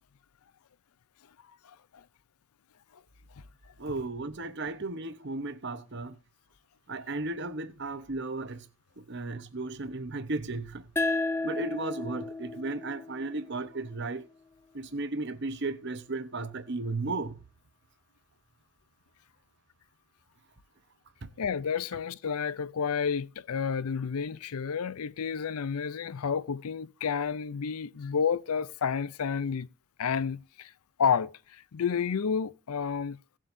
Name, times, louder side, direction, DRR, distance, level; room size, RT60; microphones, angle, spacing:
voice 1, 3.8-6.1 6.9-8.6 9.0-10.8 11.4-14.2 14.7-17.3 21.2-21.3, right 2 dB, 50° right, 0.9 m, -35 dB
sound 1, 11.0-14.2, left 2 dB, 10° left, 0.5 m, -33 dB
voice 2, 21.4-29.7 30.0-30.7 31.0-33.2, left 6 dB, 85° left, 0.5 m, -30 dB
18.0 x 7.5 x 2.6 m
head